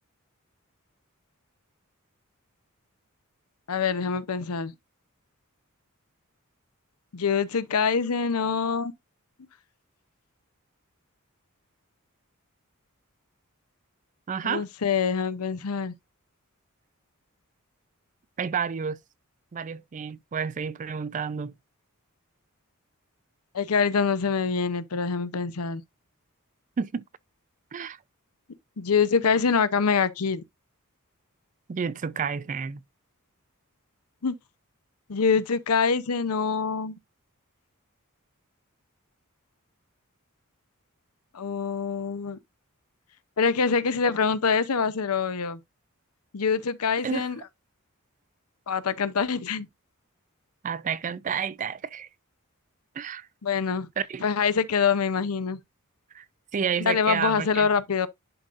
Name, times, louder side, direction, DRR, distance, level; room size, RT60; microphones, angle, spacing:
voice 1, 3.7-4.7 7.1-8.9 14.4-15.9 23.5-25.8 28.8-30.4 34.2-34.4 35.1-36.9 41.3-42.4 43.4-45.6 46.3-47.4 48.7-49.7 53.4-53.9 54.2-55.6 56.8-58.1, left 5 dB, 90° left, 0.7 m, -25 dB
voice 2, 14.3-14.7 18.4-19.0 19.5-21.5 26.8-27.0 27.7-28.0 31.7-32.8 47.0-47.3 50.6-52.1 53.0-53.3 54.0-54.2 56.1-56.2 56.5-57.7, right 6 dB, 35° right, 0.4 m, -30 dB
11.0 x 3.8 x 2.5 m
head